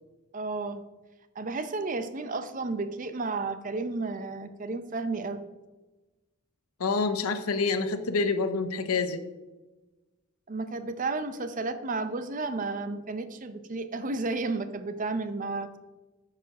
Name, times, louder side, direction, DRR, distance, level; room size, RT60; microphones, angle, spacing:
voice 1, 0.3-0.8 1.4-5.4 10.5-15.8, right 3 dB, 35° right, 11 dB, 0.6 m, -32 dB
voice 2, 6.8-9.2, left 4 dB, 75° left, 10 dB, 0.7 m, -27 dB
8.9 x 4.9 x 6.0 m, 1.1 s
head